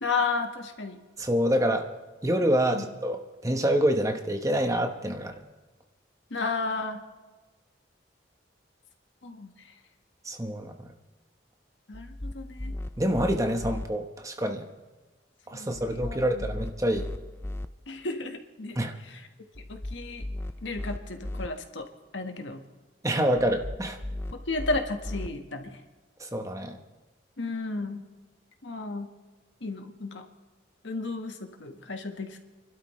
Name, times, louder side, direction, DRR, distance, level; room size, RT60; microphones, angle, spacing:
voice 1, 0.0-1.0 2.7-2.9 6.3-7.0 9.2-9.5 11.9-12.7 15.5-16.5 17.9-18.8 19.1-19.2 19.7-20.2 20.6-21.9 22.1-22.6 24.5-25.8 27.4-28.0 28.6-29.1 29.6-30.3 30.8-32.4, left 3 dB, 90° left, 5 dB, 1.5 m, -33 dB
voice 2, 1.2-1.9 2.2-5.3 10.3-10.7 13.0-14.7 15.5-17.1 18.8-18.9 23.0-24.0 26.2-26.8, equal, 20° right, 4 dB, 1.1 m, -26 dB
sound 1, 11.9-13.9 15.7-17.7 19.6-21.5 23.4-25.3, left 1 dB, 15° left, 0.4 m, -37 dB
28.0 x 12.0 x 3.2 m, 1.3 s
head